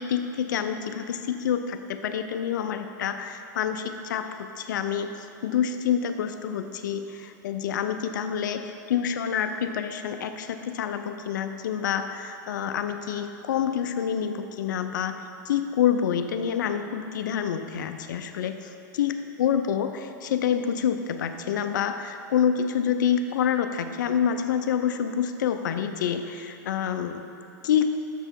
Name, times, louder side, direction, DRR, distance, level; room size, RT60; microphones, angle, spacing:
voice 1, 0.0-27.2 27.6-27.9, left 8 dB, 75° left, 8 dB, 0.5 m, -27 dB
6.9 x 6.7 x 4.5 m, 2.6 s
hypercardioid pair, 120°, 10 cm